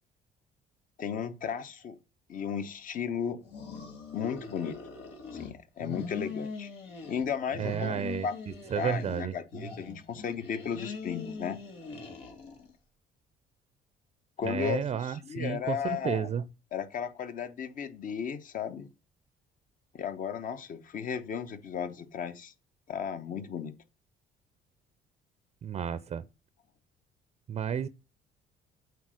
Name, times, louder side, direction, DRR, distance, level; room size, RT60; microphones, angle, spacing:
voice 1, 1.0-2.0 2.3-3.4 4.1-4.8 5.3-6.7 7.1-8.3 8.7-11.6 14.4-16.3 16.7-18.9 19.9-22.5 22.9-23.7, left 7 dB, 50° left, 1.1 m, -35 dB
sound 1, 3.4-5.5 5.8-7.3 7.5-9.3 9.5-12.7, left 4 dB, 90° left, 2.3 m, -42 dB
voice 2, 7.6-8.3 8.7-9.4 14.4-16.4 25.6-26.2 27.5-27.9, right 8 dB, 40° right, 0.5 m, -32 dB
8.2 x 4.1 x 6.3 m
cardioid pair, 110°, 17 cm